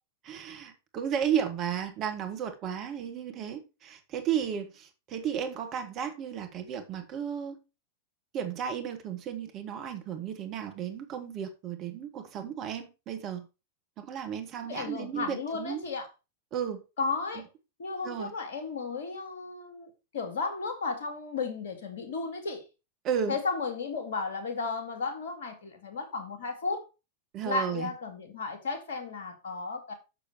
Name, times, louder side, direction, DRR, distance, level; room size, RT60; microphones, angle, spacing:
voice 1, 0.2-7.6 8.3-13.5 14.0-15.8 16.5-16.8 17.3-17.4 18.0-18.3 23.0-23.4 27.3-27.9, right 8 dB, 35° right, 1.6 m, -33 dB
voice 2, 14.6-16.1 17.0-17.4 17.8-22.6 23.3-26.8 27.4-29.9, left 4 dB, 60° left, 2.2 m, -34 dB
7.0 x 6.6 x 4.6 m
figure-of-eight pair, 90°, 0 cm